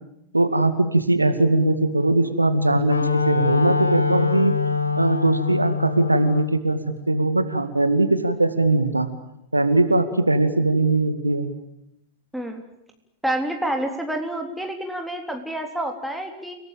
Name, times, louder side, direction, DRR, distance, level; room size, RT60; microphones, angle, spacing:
voice 1, 0.3-3.0 3.3-4.5 5.0-6.8 7.1-9.1 9.5-11.5, right 2 dB, 85° right, 10 dB, 2.1 m, -20 dB
Wind instrument woodwind instrument, 2.4-6.5, left 5 dB, 75° left, 1.9 m, -24 dB
voice 2, 13.2-16.5, right 1 dB, ahead, 2 dB, 3.7 m, -28 dB
29.5 x 19.0 x 9.1 m, 0.81 s
figure-of-eight pair, 90°, 0 cm